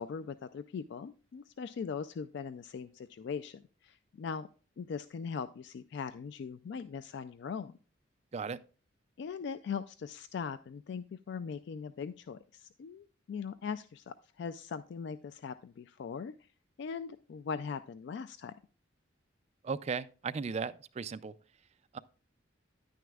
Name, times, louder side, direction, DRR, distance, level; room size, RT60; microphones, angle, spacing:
voice 1, 0.0-4.5 4.8-7.8 9.2-16.5 16.8-18.5, left 6 dB, 60° left, 0.3 m, -40 dB
voice 2, 19.6-21.3 21.9-22.0, right 5 dB, 35° right, 0.3 m, -36 dB
10.0 x 9.2 x 2.3 m
head